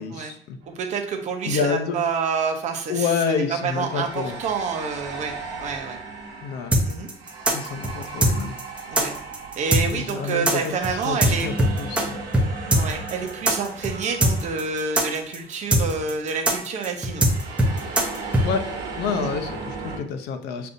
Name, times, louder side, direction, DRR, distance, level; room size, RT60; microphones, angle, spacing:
voice 1, 0.0-0.6 1.5-2.0 2.9-4.4 6.4-6.8 7.5-8.5 9.9-10.7 11.0-12.2 18.4-18.6 19.0-20.7, left 6 dB, 75° left, 7 dB, 0.6 m, -28 dB
sound 1, 0.6-0.8 3.3-15.7 15.9-16.1 16.9-20.0, right 4 dB, 80° right, 1.1 m, -37 dB
voice 2, 0.7-6.0 6.8-7.1 8.9-9.2 9.6-11.5 12.7-17.3 19.1-19.3, right 5 dB, 45° right, 4 dB, 0.7 m, -28 dB
sound 2, 6.7-12.0 12.3-12.5 12.7-18.5, right 1 dB, 5° right, 0.5 m, -20 dB
6.6 x 2.6 x 2.6 m, 0.64 s
cardioid pair, 175°, 17 cm